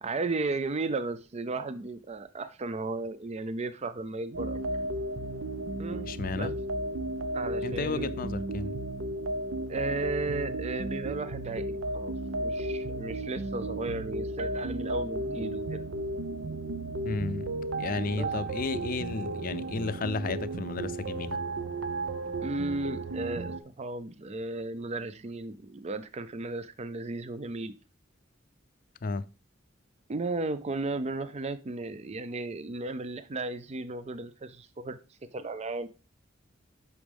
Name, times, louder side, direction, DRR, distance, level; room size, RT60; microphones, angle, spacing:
voice 1, 0.0-4.6 5.8-6.1 6.4-6.5 7.3-8.1 9.7-12.1 12.4-15.8 18.2-18.4 22.4-27.7 30.1-35.0 35.3-35.9, right 3 dB, 35° right, 0.4 m, -35 dB
sound 1, 4.3-23.6, right 1 dB, 80° right, 0.8 m, -34 dB
voice 2, 6.0-6.5 7.6-8.7 17.0-21.4 29.0-29.2, left 3 dB, 45° left, 0.5 m, -33 dB
8.5 x 6.1 x 3.5 m
head